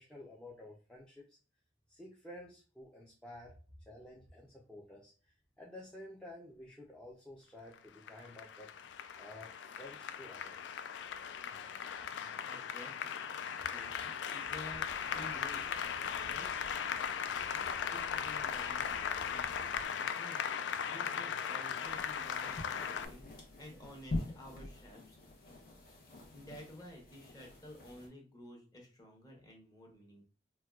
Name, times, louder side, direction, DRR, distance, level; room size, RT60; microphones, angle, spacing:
voice 1, 0.0-1.4 1.9-3.5 3.9-8.7 9.2-10.8, left 1 dB, 5° left, -5 dB, 0.5 m, -52 dB
Applause, 7.7-23.1, left 7 dB, 90° left, 0.3 m, -38 dB
voice 2, 12.5-13.2 13.7-14.8 15.1-16.6 17.6-23.2 23.6-25.2 26.3-30.3, left 1 dB, 20° left, 0 dB, 0.9 m, -52 dB
sound 1, 14.7-19.9, right 2 dB, 75° right, 0.5 m, -57 dB
sound 2, 21.8-28.1, left 2 dB, 55° left, 0.8 m, -45 dB
4.4 x 2.2 x 2.3 m, 0.36 s
head